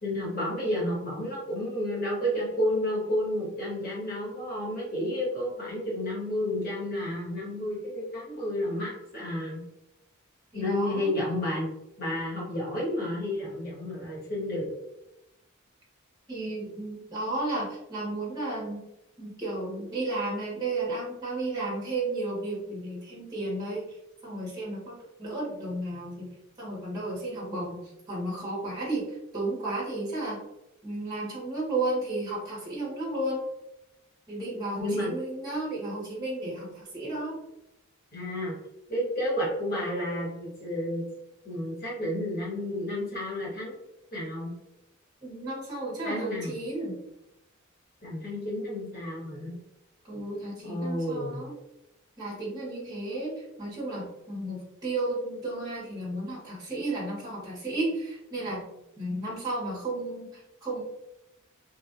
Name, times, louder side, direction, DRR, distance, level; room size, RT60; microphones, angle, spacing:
voice 1, 0.0-9.6 10.5-11.7 12.0-14.7 34.8-35.1 38.1-38.6 38.9-41.0 41.4-43.8 44.1-44.5 46.0-46.5 48.0-49.6 50.6-51.4, left 1 dB, 45° left, -6 dB, 1.4 m, -31 dB
voice 2, 10.5-11.2 16.3-18.9 19.2-23.9 24.2-26.3 26.6-30.4 30.8-33.4 34.3-37.4 45.2-47.0 50.1-51.6 52.2-58.7 59.0-60.8, right 2 dB, 20° right, -6 dB, 1.1 m, -33 dB
2.9 x 2.5 x 2.5 m, 0.89 s
head